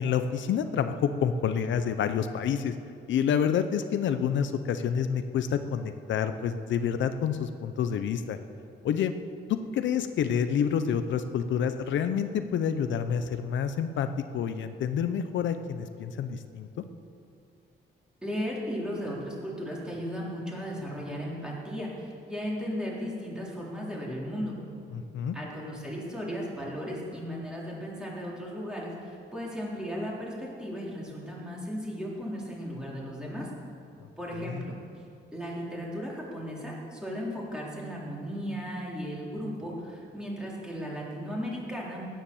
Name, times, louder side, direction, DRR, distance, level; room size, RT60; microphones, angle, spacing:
voice 1, 0.0-2.7 3.1-8.4 8.8-9.1 9.5-14.1 14.3-16.8 24.9-25.4 34.4-34.6, left 8 dB, 85° left, 9 dB, 0.7 m, -28 dB
voice 2, 18.2-24.5 25.3-33.5 34.2-34.7 35.3-42.1, equal, 5° right, -5 dB, 3.9 m, -36 dB
16.0 x 10.0 x 7.2 m, 2.5 s
cardioid pair, 125°, 19 cm